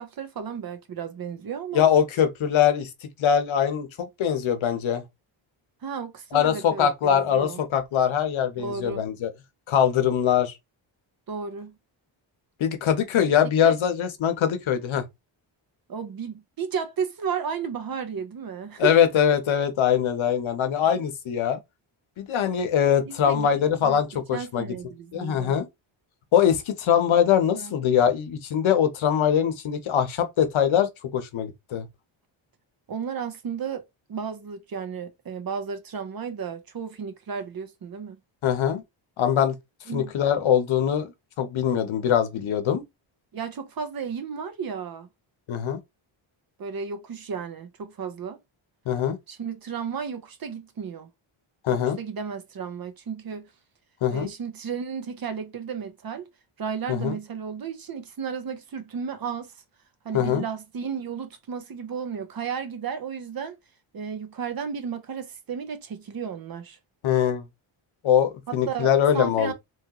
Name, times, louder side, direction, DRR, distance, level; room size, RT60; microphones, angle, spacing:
voice 1, 0.0-1.9 5.8-7.6 8.6-9.1 11.3-11.8 13.6-13.8 15.9-18.9 23.1-23.5 23.8-24.0 24.3-25.6 27.5-27.7 32.9-33.8 34.1-38.2 39.9-40.1 43.3-45.1 46.6-48.4 49.3-51.1 52.0-53.5 54.1-56.3 56.6-59.5 60.0-63.6 63.9-66.8 68.5-69.5, right 6 dB, 45° right, 0.6 m, -33 dB
voice 2, 1.7-2.9 3.2-5.0 6.3-9.3 9.7-10.5 12.6-15.0 18.8-21.6 22.2-24.7 25.1-25.7 26.3-31.9 38.4-38.8 39.2-39.5 39.9-41.1 41.4-42.8 45.5-45.8 48.9-49.2 51.6-52.0 54.0-54.3 56.9-57.2 60.1-60.4 67.0-67.4 68.0-69.5, left 9 dB, 70° left, 0.8 m, -22 dB
3.1 x 2.3 x 2.9 m
wide cardioid pair, 125°, 49 cm